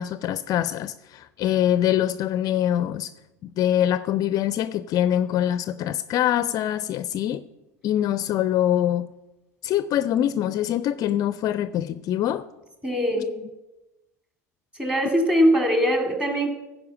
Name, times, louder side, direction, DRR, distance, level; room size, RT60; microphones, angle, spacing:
voice 1, 0.0-3.1 3.4-7.4 7.8-9.1 9.6-12.5 13.2-13.3, left 11 dB, 45° left, 0.4 m, -24 dB
voice 2, 12.8-13.4 14.8-16.5, equal, 10° right, 2.5 m, -21 dB
15.5 x 5.2 x 7.1 m
figure-of-eight pair, 75°, 9 cm